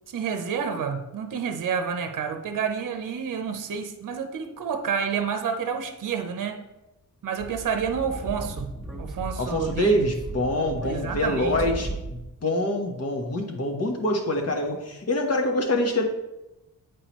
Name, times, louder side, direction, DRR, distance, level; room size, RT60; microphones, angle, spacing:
voice 1, 0.1-6.6 7.2-10.1 10.8-11.6, right 6 dB, 60° right, 0.7 m, -29 dB
Speech / Wind, 7.4-12.3, right 2 dB, ahead, 1.2 m, -36 dB
voice 2, 9.4-16.0, left 1 dB, 45° left, 1.2 m, -25 dB
8.6 x 4.8 x 3.0 m
cardioid pair, 100°, 35 cm